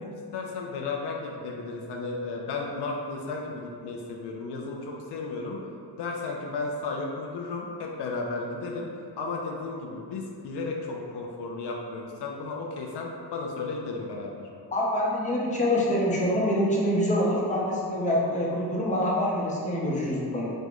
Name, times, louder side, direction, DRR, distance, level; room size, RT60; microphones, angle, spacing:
voice 1, 0.0-5.6 5.9-14.4, left 3 dB, 70° left, 0 dB, 0.5 m, -34 dB
voice 2, 14.7-20.4, left 1 dB, 20° left, -5 dB, 0.6 m, -25 dB
4.2 x 2.1 x 2.9 m, 2.4 s
cardioid pair, 95°, 42 cm